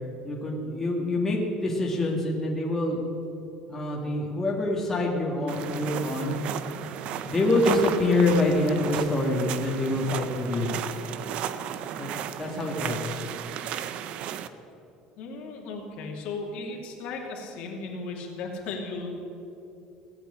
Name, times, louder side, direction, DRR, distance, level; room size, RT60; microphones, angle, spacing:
voice 1, 0.2-3.0 3.7-6.4 7.2-10.7 12.0-12.1 12.4-13.2, left 2 dB, 15° left, -2 dB, 2.0 m, -26 dB
sound 1, 5.5-14.5, right 9 dB, 50° right, 0.7 m, -34 dB
voice 2, 15.2-19.1, left 3 dB, 60° left, 0 dB, 2.8 m, -36 dB
17.5 x 7.9 x 8.7 m, 2.8 s
cardioid pair, 150°, 2 cm